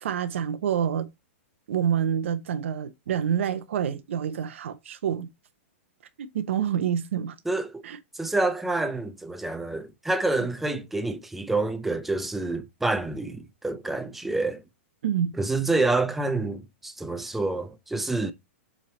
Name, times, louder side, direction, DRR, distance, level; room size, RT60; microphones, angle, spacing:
voice 1, 0.0-1.1 1.7-5.3 6.2-7.4 7.8-8.0 15.0-15.3, right 8 dB, 65° right, 0.8 m, -27 dB
voice 2, 7.5-7.8 8.1-14.6 15.4-18.3, right 2 dB, 5° right, 0.4 m, -27 dB
7.4 x 3.3 x 4.1 m
supercardioid pair, 170°, 7 cm